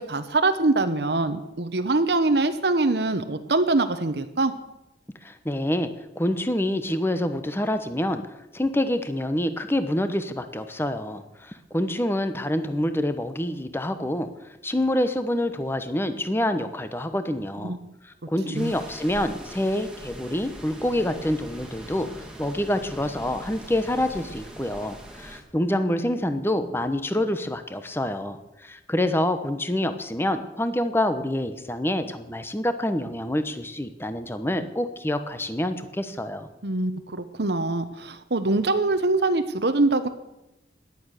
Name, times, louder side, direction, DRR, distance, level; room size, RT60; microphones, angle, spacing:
voice 1, 0.0-4.5 17.6-17.9 18.5-18.7 36.6-40.1, right 2 dB, 70° right, 8 dB, 1.0 m, -24 dB
voice 2, 5.2-5.9 6.2-8.2 8.5-14.3 14.6-17.8 18.0-36.5, left 1 dB, 15° left, 9 dB, 1.0 m, -27 dB
sound 1, 18.5-25.4, right 1 dB, 5° right, 2.2 m, -42 dB
17.5 x 11.5 x 6.6 m, 0.94 s
head